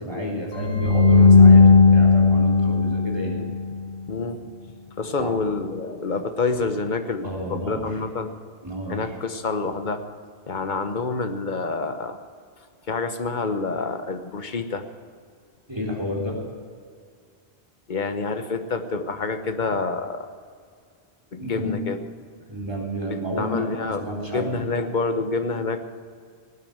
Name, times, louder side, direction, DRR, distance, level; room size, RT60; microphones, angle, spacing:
voice 1, 0.0-3.4 5.1-5.3 7.2-7.8 8.6-9.1 15.7-16.4 21.4-21.8 22.5-24.6, equal, 25° right, -2 dB, 3.6 m, -31 dB
sound 1, 0.5-3.7, left 4 dB, 75° left, 1.5 m, -15 dB
voice 2, 4.1-4.4 5.0-8.3 8.9-10.0 10.5-12.2 12.9-14.8 17.9-20.3 21.3-22.0 23.4-25.8, left 4 dB, 45° left, 7 dB, 1.3 m, -27 dB
18.0 x 9.2 x 7.9 m, 2.1 s
omnidirectional pair, 1.1 m